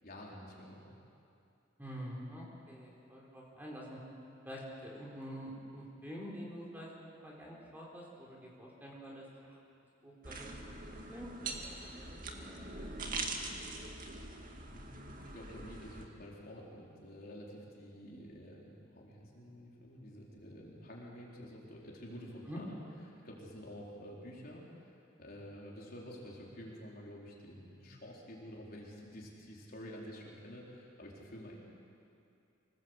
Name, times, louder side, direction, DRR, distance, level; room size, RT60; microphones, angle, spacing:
voice 1, 0.0-1.0 14.6-22.8 23.2-31.6, equal, 50° left, -3 dB, 4.4 m, -49 dB
voice 2, 1.8-4.0 4.4-9.6 10.0-10.6 10.9-12.9 22.5-22.6, equal, 10° right, -3 dB, 4.3 m, -47 dB
sound 1, 10.2-16.1, right 3 dB, 45° right, 2.2 m, -43 dB
26.0 x 19.0 x 8.2 m, 2.6 s
head